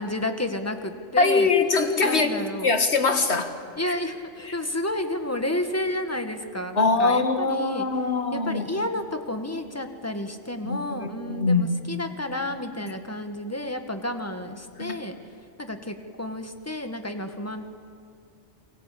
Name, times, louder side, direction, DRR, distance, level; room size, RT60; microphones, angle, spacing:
voice 1, 0.0-1.5 2.0-2.7 3.8-7.9 8.3-15.2 15.6-17.7, left 1 dB, 15° left, 6 dB, 1.6 m, -31 dB
voice 2, 1.2-3.5 6.8-8.6 10.6-11.8 14.8-14.9, left 3 dB, 60° left, 6 dB, 2.1 m, -23 dB
28.5 x 23.0 x 8.6 m, 2.4 s
omnidirectional pair, 1.2 m